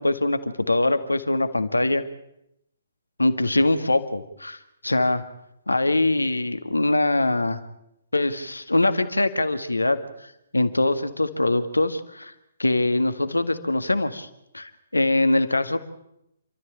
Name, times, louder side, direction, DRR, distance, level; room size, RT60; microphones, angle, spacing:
voice 1, 0.0-2.1 3.2-4.6 4.8-5.2 5.7-7.6 8.1-10.0 10.5-12.3 12.6-14.3 14.5-15.8, left 2 dB, 80° left, 10 dB, 1.8 m, -23 dB
28.0 x 13.0 x 8.7 m, 0.82 s
figure-of-eight pair, 130°, 0 cm